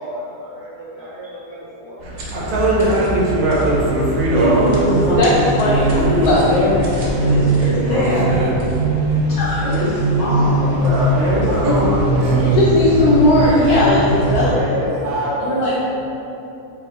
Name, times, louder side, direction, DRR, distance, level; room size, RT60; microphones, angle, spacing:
voice 1, 0.0-2.3 10.8-12.4 12.9-13.4 14.4-15.8, right 1 dB, 65° left, -11 dB, 2.1 m, -28 dB
sound 1, 2.0-14.5, right 1 dB, 55° right, 1.0 m, -21 dB
voice 2, 2.3-4.8 5.6-6.1 7.8-8.5 11.6-11.7 12.2-12.6, right 1 dB, 80° right, -5 dB, 1.3 m, -20 dB
voice 3, 4.3-8.3 9.6-12.1, left 1 dB, 30° left, -11 dB, 1.3 m, -21 dB
voice 4, 5.2-5.9 6.3-6.4 9.3-9.8 12.4-14.6 15.4-15.8, left 1 dB, 80° left, -7 dB, 1.1 m, -17 dB
4.9 x 2.3 x 3.7 m, 2.9 s
omnidirectional pair, 1.6 m